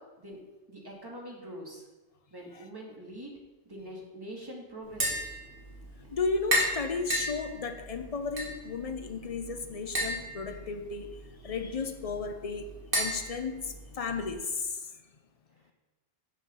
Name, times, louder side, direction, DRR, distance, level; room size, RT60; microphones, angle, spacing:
voice 1, 0.7-1.8 2.3-3.3 3.7-5.3, right 1 dB, 20° right, -2 dB, 1.9 m, -44 dB
Tap, 4.8-14.3, equal, 50° right, 2.2 m, -35 dB
voice 2, 6.1-11.1 11.4-14.9, left 4 dB, 40° left, 7 dB, 0.7 m, -34 dB
7.1 x 6.7 x 5.6 m, 1.2 s
omnidirectional pair, 1.2 m